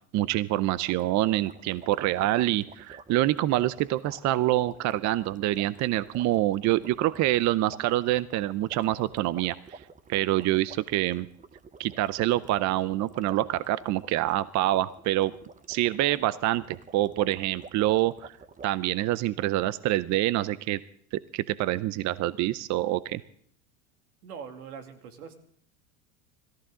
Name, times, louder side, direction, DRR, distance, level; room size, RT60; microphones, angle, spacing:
voice 1, 0.1-9.8 10.1-11.3 11.8-15.3 15.7-18.3 18.6-20.8 21.1-23.2, right 15 dB, 40° right, 18 dB, 0.6 m, -26 dB
sound 1, 0.8-18.7, right 4 dB, 20° right, 1.0 m, -49 dB
voice 2, 24.2-25.3, right 6 dB, 90° right, 7 dB, 2.5 m, -42 dB
25.0 x 14.5 x 3.8 m, 0.64 s
supercardioid pair, 105°, 43 cm